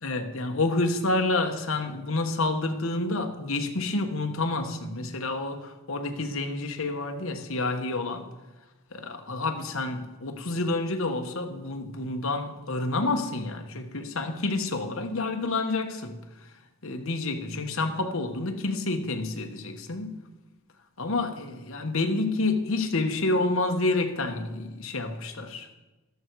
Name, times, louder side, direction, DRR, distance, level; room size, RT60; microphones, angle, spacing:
voice 1, 0.0-8.3 8.9-16.2 16.8-20.2 21.0-25.7, left 2 dB, 70° left, 1.2 m, -29 dB
13.5 x 12.5 x 4.7 m
head